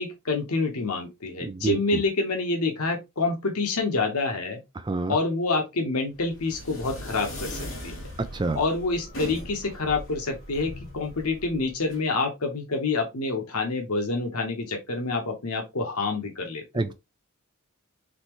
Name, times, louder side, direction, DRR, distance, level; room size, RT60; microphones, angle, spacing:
voice 1, 0.0-4.6 5.1-8.1 8.6-16.6, left 3 dB, 90° left, 1.1 m, -27 dB
voice 2, 1.4-2.0 4.8-5.2 8.2-8.6 16.7-16.9, right 3 dB, 20° right, 0.4 m, -28 dB
sound 1, 6.2-12.0, equal, 60° left, 2.2 m, -39 dB
4.1 x 3.3 x 3.0 m
head